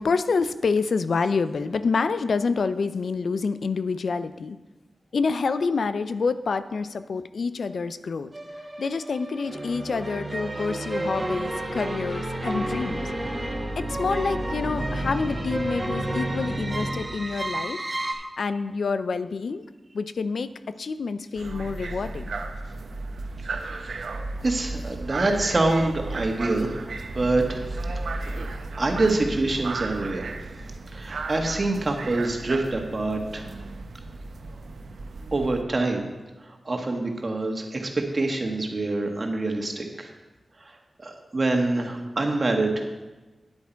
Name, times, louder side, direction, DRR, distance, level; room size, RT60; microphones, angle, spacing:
voice 1, 0.0-4.6 5.1-8.3 8.8-13.0 13.8-17.8 18.4-19.6 19.9-22.3, left 4 dB, 75° left, 12 dB, 0.4 m, -27 dB
sound 1, 8.3-18.1, right 1 dB, 25° right, 1.6 m, -30 dB
sound 2, 21.4-35.6, right 3 dB, 85° right, 0.8 m, -34 dB
voice 2, 23.6-24.1 24.4-26.8 27.1-27.6 28.2-28.4 28.8-30.3 30.9-33.5 35.3-36.0 36.5-40.1 41.0-42.8, right 2 dB, 45° right, 3 dB, 1.6 m, -26 dB
9.7 x 8.1 x 4.6 m, 1.2 s
wide cardioid pair, 75°, 0 cm